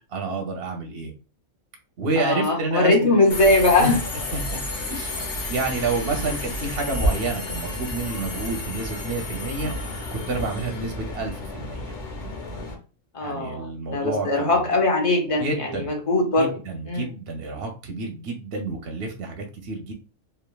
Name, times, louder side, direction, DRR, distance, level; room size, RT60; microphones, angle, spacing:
voice 1, 0.1-1.1 2.0-3.1 3.8-4.0 4.3-4.6 4.9-9.7 10.1-11.9 13.2-14.8 15.4-15.9 16.4-19.9, right 3 dB, 60° right, 2 dB, 0.7 m, -29 dB
voice 2, 2.2-4.0 13.1-16.5 16.9-17.1, left 2 dB, 35° left, 1 dB, 0.6 m, -21 dB
Subway metro underground, 3.3-12.7, left 1 dB, 70° left, 1.1 m, -31 dB
3.2 x 2.3 x 2.2 m, 0.34 s
omnidirectional pair, 1.4 m